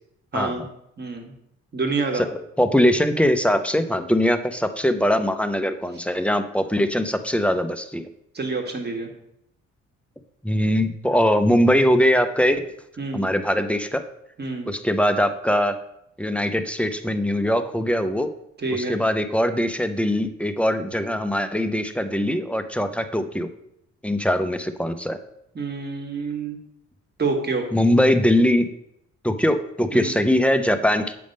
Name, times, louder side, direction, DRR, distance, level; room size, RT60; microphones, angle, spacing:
voice 1, 0.3-0.7 1.0-1.3 1.7-2.2 8.3-9.1 13.0-13.3 14.4-14.7 18.6-19.0 25.5-26.6 27.2-27.7 29.9-30.1, right 3 dB, 35° right, 2 dB, 1.5 m, -27 dB
voice 2, 2.6-8.1 10.4-12.6 13.1-14.0 14.7-15.8 16.2-18.3 18.9-23.5 24.0-25.2 27.7-28.7 29.2-31.1, equal, 5° left, 8 dB, 0.5 m, -21 dB
7.6 x 3.5 x 5.3 m, 0.77 s
cardioid pair, 90°, 30 cm